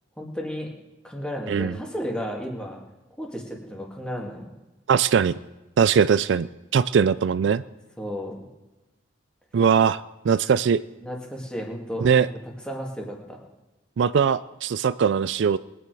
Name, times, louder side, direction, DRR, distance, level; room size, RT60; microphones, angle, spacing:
voice 1, 0.2-0.7 1.0-2.8 3.2-4.5 8.0-8.4 11.0-12.4 12.6-13.4, equal, 5° left, 0 dB, 2.1 m, -33 dB
voice 2, 4.9-5.3 5.8-6.5 6.7-7.6 9.5-10.8 12.0-12.3 14.0-15.6, right 7 dB, 65° right, 15 dB, 0.3 m, -20 dB
21.0 x 9.2 x 4.8 m, 1.1 s
head